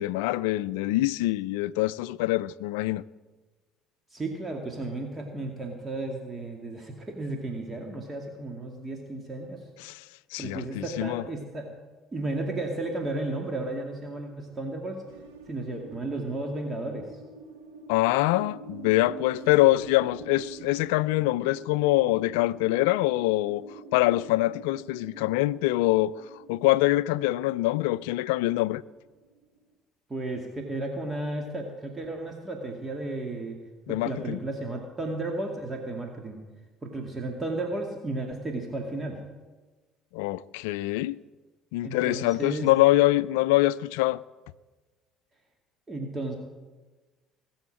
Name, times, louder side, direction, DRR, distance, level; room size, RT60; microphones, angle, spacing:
voice 1, 0.0-3.0 9.8-10.0 10.3-11.2 17.9-23.6 23.9-26.1 26.5-28.8 33.9-34.4 40.1-41.2 41.7-44.2, left 17 dB, 80° left, 0.4 m, -24 dB
voice 2, 4.1-9.7 10.4-11.7 12.1-15.0 15.5-17.2 30.1-33.6 33.9-36.4 36.8-39.2 41.8-42.7 45.9-46.4, right 2 dB, 25° right, 2.3 m, -33 dB
sound 1, 15.1-29.8, right 4 dB, 85° right, 1.6 m, -47 dB
19.0 x 7.1 x 8.6 m
hypercardioid pair, 65°, 0 cm